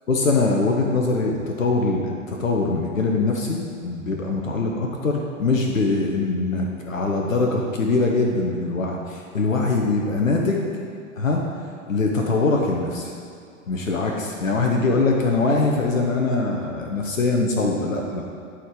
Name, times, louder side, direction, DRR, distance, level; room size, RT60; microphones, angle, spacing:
voice 1, 0.1-10.7 11.2-11.4 11.9-13.1 13.7-18.2, left 3 dB, 80° left, 0 dB, 1.0 m, -22 dB
11.0 x 4.9 x 3.8 m, 2.5 s
figure-of-eight pair, 95°, 39 cm